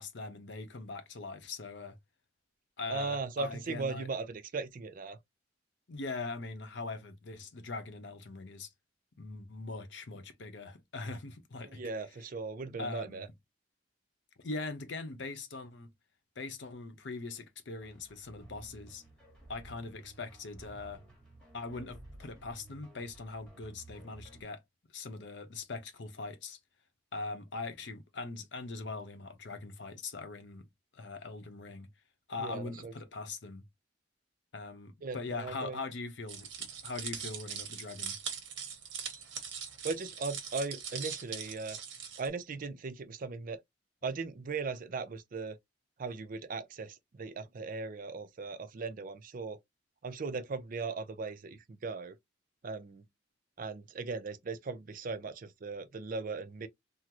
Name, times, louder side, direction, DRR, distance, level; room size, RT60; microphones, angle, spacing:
voice 1, 0.0-2.0 2.8-4.1 5.9-8.7 9.2-11.8 12.8-13.3 14.4-15.9 16.4-19.0 19.5-21.0 21.5-24.6 24.9-26.6 27.1-30.7 30.9-31.9 32.3-33.6 34.5-38.2, left 3 dB, 65° left, 0.7 m, -41 dB
voice 2, 2.9-5.2 11.7-13.3 32.4-32.9 35.0-35.8 39.8-41.8 42.2-43.6 44.0-45.6 46.0-49.6 50.0-52.2 52.6-53.0 53.6-56.7, right 4 dB, 45° right, 0.4 m, -38 dB
sound 1, 17.8-24.4, right 2 dB, 5° left, 1.1 m, -54 dB
sound 2, 36.3-42.3, right 7 dB, 70° right, 0.9 m, -41 dB
3.7 x 2.0 x 2.8 m
head